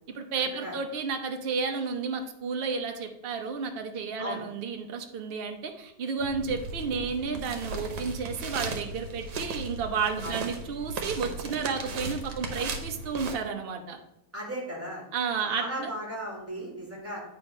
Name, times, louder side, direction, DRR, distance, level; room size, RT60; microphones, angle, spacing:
voice 1, 0.1-14.0 15.1-15.9, right 5 dB, 55° right, 5 dB, 0.6 m, -32 dB
sound 1, 6.2-13.3, right 3 dB, 70° right, 1.4 m, -36 dB
voice 2, 14.3-15.0 15.4-17.2, equal, 5° right, -5 dB, 2.5 m, -36 dB
8.8 x 3.5 x 5.3 m, 0.81 s
omnidirectional pair, 1.9 m